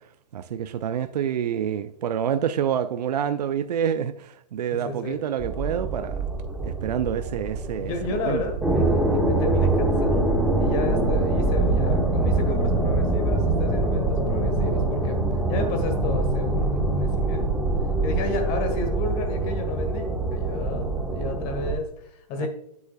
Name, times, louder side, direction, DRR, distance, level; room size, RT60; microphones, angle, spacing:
voice 1, 0.3-6.3 6.6-8.4 15.6-15.7 22.4-22.5, right 9 dB, 70° right, 0.6 m, -27 dB
voice 2, 4.7-5.2 7.8-15.2 15.5-17.5 18.0-22.5, left 2 dB, 35° left, 1.5 m, -32 dB
sound 1, 5.4-21.7, right 2 dB, 5° right, 1.3 m, -24 dB
9.4 x 8.1 x 2.3 m
hypercardioid pair, 125°, 21 cm